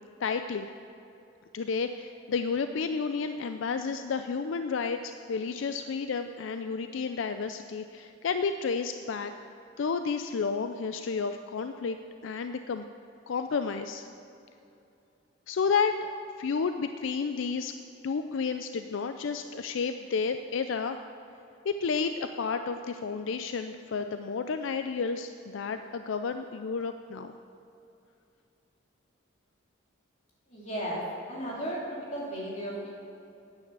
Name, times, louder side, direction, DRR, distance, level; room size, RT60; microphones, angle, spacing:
voice 1, 0.2-0.7 1.5-9.3 9.8-12.0 12.2-12.8 13.3-14.1 15.5-16.1 16.4-17.7 18.0-21.0 21.6-27.3, left 5 dB, 75° left, 8 dB, 0.4 m, -31 dB
voice 2, 30.5-31.0 31.3-31.8 32.1-32.9, right 1 dB, 35° left, -6 dB, 2.9 m, -34 dB
9.4 x 9.2 x 6.8 m, 2.7 s
head